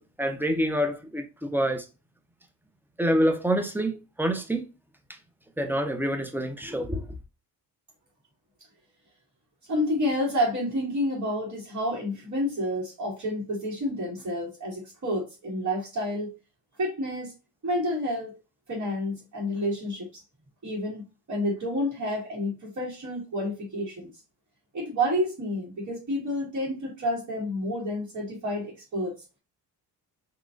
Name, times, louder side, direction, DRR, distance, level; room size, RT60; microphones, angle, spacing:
voice 1, 0.0-1.8 3.0-4.6 5.6-7.0, equal, 5° right, 0.7 m, -27 dB
voice 2, 9.7-16.3 16.8-17.3 17.6-18.4 18.7-20.2 20.6-24.1 24.7-29.2, equal, 45° right, 1.8 m, -29 dB
3.7 x 3.0 x 2.5 m
cardioid pair, 70°, 41 cm